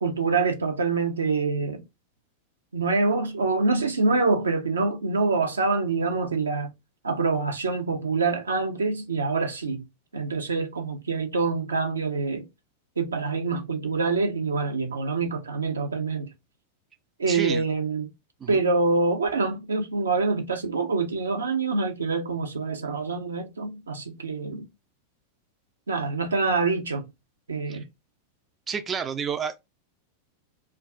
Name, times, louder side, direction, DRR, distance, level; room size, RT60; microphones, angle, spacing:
voice 1, 0.0-1.8 2.7-6.7 7.0-9.8 10.1-12.4 13.0-16.3 17.2-18.1 18.5-24.6 25.9-27.1 27.5-27.8, right 4 dB, 75° right, 0.5 m, -25 dB
voice 2, 17.3-17.6 18.4-18.6 27.7-27.8 28.7-29.6, right 7 dB, 20° right, 0.3 m, -30 dB
2.3 x 2.3 x 3.5 m
figure-of-eight pair, 90°, 0 cm